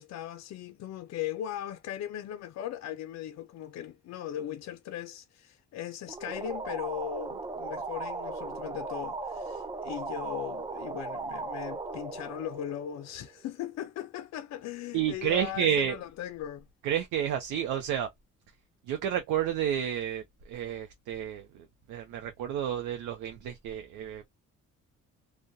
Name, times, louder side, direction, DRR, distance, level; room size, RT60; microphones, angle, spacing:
voice 1, 0.0-16.7, left 11 dB, 60° left, 0.4 m, -38 dB
sound 1, 6.1-13.5, right 3 dB, 15° right, 0.3 m, -37 dB
voice 2, 14.9-16.0 16.8-18.1 18.9-24.3, right 9 dB, 90° right, 0.5 m, -30 dB
2.3 x 2.1 x 2.6 m
cardioid pair, 90°, 30 cm